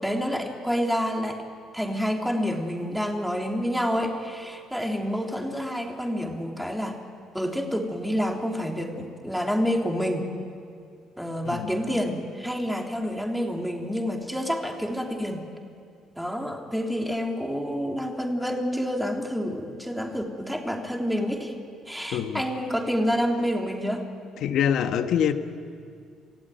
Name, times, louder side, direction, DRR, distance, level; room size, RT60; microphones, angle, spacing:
voice 1, 0.0-1.4 1.7-7.0 7.3-10.3 11.2-15.4 16.2-21.5 21.9-24.0, equal, ahead, 1 dB, 3.3 m, -28 dB
voice 2, 22.1-22.4 24.4-25.3, left 9 dB, 70° left, 9 dB, 1.3 m, -24 dB
27.5 x 16.0 x 9.3 m, 2.3 s
supercardioid pair, 80°, 0 cm